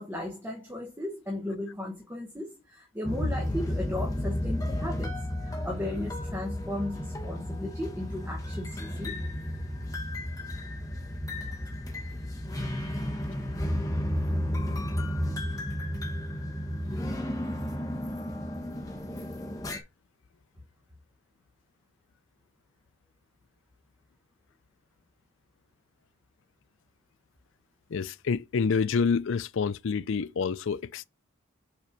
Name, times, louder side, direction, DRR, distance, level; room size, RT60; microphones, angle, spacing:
voice 1, 0.0-5.1 5.4-9.2, left 1 dB, 10° right, 1.1 m, -35 dB
sound 1, 3.0-19.8, left 1 dB, 15° left, 1.1 m, -33 dB
voice 2, 27.9-31.0, left 5 dB, 60° left, 0.4 m, -28 dB
5.7 x 4.2 x 5.1 m
head